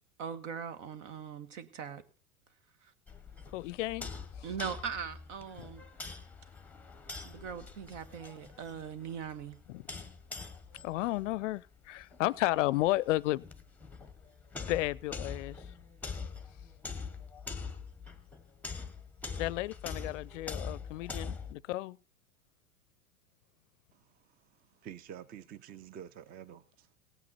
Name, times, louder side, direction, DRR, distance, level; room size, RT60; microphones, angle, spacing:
voice 1, 0.2-2.0 2.8-2.9 4.4-5.8 7.2-9.6, right 7 dB, 60° right, 1.4 m, -40 dB
sound 1, 3.1-21.5, left 4 dB, 5° left, 1.0 m, -44 dB
voice 2, 3.5-4.1 9.7-9.8 10.8-13.4 14.7-15.6 19.4-22.0, left 17 dB, 60° left, 0.5 m, -32 dB
voice 3, 23.9-26.9, right 9 dB, 20° right, 0.5 m, -49 dB
17.0 x 8.6 x 4.2 m
hypercardioid pair, 100°, 41 cm